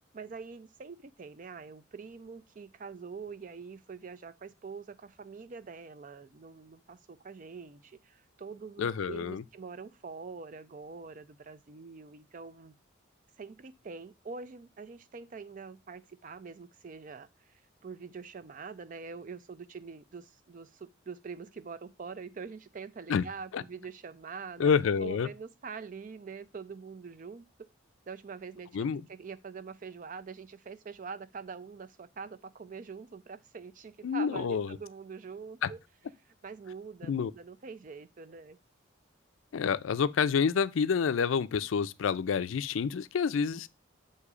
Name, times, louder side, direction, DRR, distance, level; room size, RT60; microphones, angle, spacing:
voice 1, 0.1-12.7 13.4-24.7 25.0-27.7 28.1-35.8 36.4-38.6, right 5 dB, 40° right, 0.4 m, -44 dB
voice 2, 8.8-9.4 23.1-23.2 23.5-23.6 24.6-25.3 28.7-29.0 34.0-34.7 35.6-35.7 37.0-37.3 39.5-43.7, left 6 dB, 80° left, 0.4 m, -28 dB
8.1 x 2.7 x 4.8 m
head